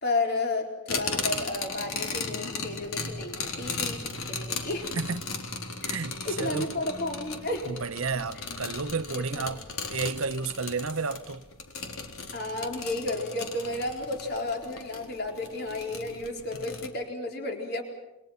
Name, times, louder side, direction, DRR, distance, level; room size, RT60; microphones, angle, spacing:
voice 1, 0.0-4.9 6.2-7.7 9.1-9.6 12.3-17.8, left 2 dB, 50° left, 4.3 m, -32 dB
sound 1, 0.9-16.9, left 4 dB, 85° left, 4.0 m, -36 dB
voice 2, 5.0-5.3 5.9-6.8 7.7-9.6 9.9-11.4, right 4 dB, 80° right, 0.9 m, -31 dB
28.5 x 26.0 x 5.8 m
head